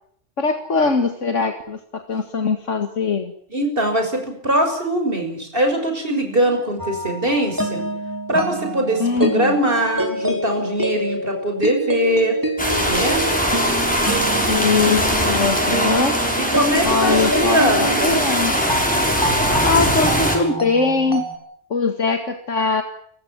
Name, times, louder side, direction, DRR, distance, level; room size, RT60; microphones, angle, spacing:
voice 1, 0.4-3.3 9.0-9.6 14.5-16.2 16.8-18.6 19.6-21.3 21.7-22.8, left 4 dB, 80° left, 6 dB, 2.3 m, -21 dB
voice 2, 3.5-7.8 8.3-12.4 12.9-13.2 16.3-18.3, right 1 dB, 45° right, 4 dB, 6.8 m, -21 dB
sound 1, 6.8-21.4, right 1 dB, 15° right, 5.3 m, -26 dB
sound 2, 12.6-20.4, equal, 5° left, 7.0 m, -21 dB
29.5 x 16.0 x 9.1 m, 0.64 s
omnidirectional pair, 1.3 m